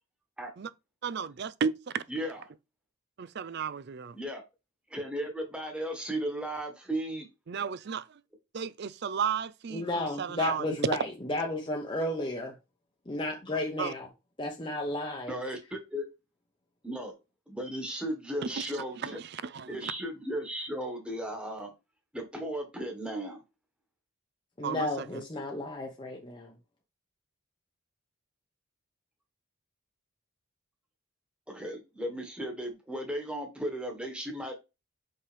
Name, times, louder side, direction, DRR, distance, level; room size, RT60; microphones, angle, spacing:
voice 1, 1.0-2.0 3.2-4.1 7.5-8.0 8.5-10.6 13.8-13.9 18.6-18.7 19.0-19.9 24.6-25.1, right 6 dB, 50° right, 0.4 m, -34 dB
voice 2, 2.1-2.4 4.1-4.4 4.9-7.3 15.3-16.1 16.8-17.2 17.5-19.2 19.7-21.7 22.1-23.4 31.5-34.5, right 1 dB, 5° right, 1.4 m, -35 dB
voice 3, 9.7-12.5 13.1-14.1 14.4-15.4 24.6-26.5, left 1 dB, 20° left, 0.8 m, -33 dB
5.6 x 5.4 x 3.3 m
head